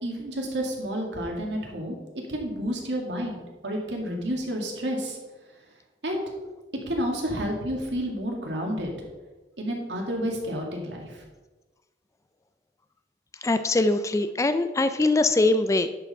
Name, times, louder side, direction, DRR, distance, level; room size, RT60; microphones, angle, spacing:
voice 1, 0.0-2.0 2.3-5.2 6.0-6.2 6.9-8.9 9.6-11.2, equal, 85° right, 0 dB, 2.0 m, -30 dB
voice 2, 13.4-15.9, left 2 dB, 15° left, 10 dB, 0.3 m, -22 dB
10.5 x 4.9 x 5.3 m, 1.2 s
head